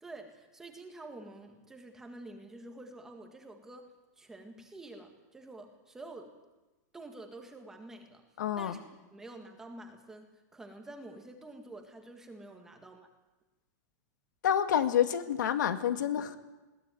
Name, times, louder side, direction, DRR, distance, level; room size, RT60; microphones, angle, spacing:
voice 1, 0.0-3.8 4.2-6.3 6.9-8.2 8.6-8.8 9.1-10.3 10.5-13.1, right 2 dB, 5° right, 4 dB, 1.7 m, -48 dB
voice 2, 8.4-8.8 14.4-16.4, left 9 dB, 80° left, 9 dB, 1.9 m, -28 dB
21.0 x 17.0 x 9.2 m, 1.1 s
supercardioid pair, 180°, 10 cm